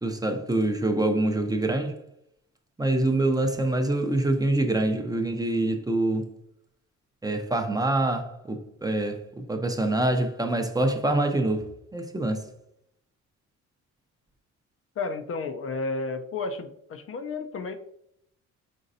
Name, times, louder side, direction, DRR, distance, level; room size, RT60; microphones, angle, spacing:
voice 1, 0.0-2.0 2.8-6.3 7.2-12.4, right 2 dB, 10° right, 0.5 m, -25 dB
voice 2, 15.0-17.8, left 3 dB, 50° left, 0.5 m, -32 dB
5.3 x 3.8 x 2.6 m
cardioid pair, 90°, 30 cm